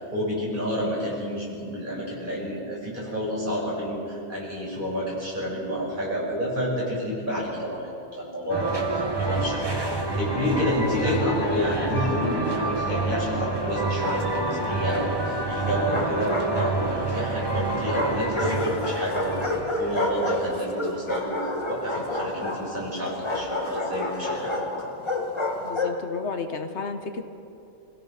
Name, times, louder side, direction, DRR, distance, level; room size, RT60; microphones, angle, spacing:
voice 1, 0.0-7.8 8.2-24.7, equal, 45° right, -5 dB, 7.1 m, -29 dB
sound 1, 8.5-20.5, right 2 dB, 20° right, 1.6 m, -28 dB
Bark, 13.8-14.7 15.6-17.2 17.9-26.0, left 2 dB, 25° left, 1.6 m, -30 dB
voice 2, 25.6-27.2, left 4 dB, 70° left, 7 dB, 1.5 m, -32 dB
28.5 x 16.5 x 6.0 m, 2.7 s
omnidirectional pair, 1.2 m